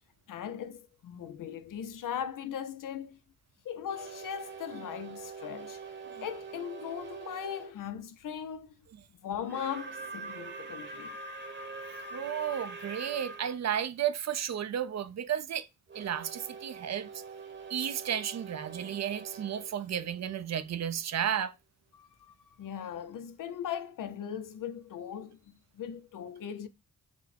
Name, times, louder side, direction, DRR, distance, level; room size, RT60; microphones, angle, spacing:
voice 1, 0.3-3.2 3.6-5.8 6.2-8.7 9.1-11.2 21.9-26.7, left 9 dB, 80° left, 0.6 m, -39 dB
sound 1, 3.9-7.7 9.4-13.6 15.9-20.7, right 4 dB, 35° right, 0.9 m, -44 dB
voice 2, 12.1-15.7 15.9-17.2 17.7-21.5, right 9 dB, 55° right, 0.5 m, -33 dB
4.4 x 2.0 x 4.1 m
cardioid pair, 65°, 32 cm